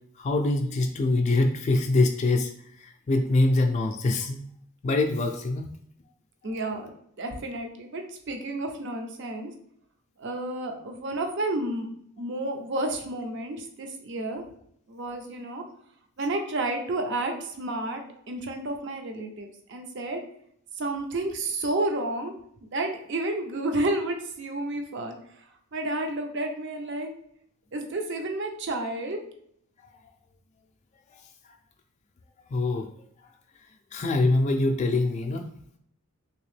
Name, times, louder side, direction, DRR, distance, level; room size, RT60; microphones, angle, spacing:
voice 1, 0.2-4.5 4.8-5.7 32.5-32.9 33.9-35.5, left 2 dB, 30° left, 3 dB, 0.3 m, -24 dB
voice 2, 6.4-6.9 7.2-9.5 10.2-11.9 12.2-14.4 14.9-15.6 16.2-20.2 20.8-22.3 22.6-25.2 25.7-27.1 27.7-29.2, right 2 dB, 55° right, 4 dB, 0.5 m, -31 dB
3.3 x 2.8 x 3.2 m, 0.68 s
head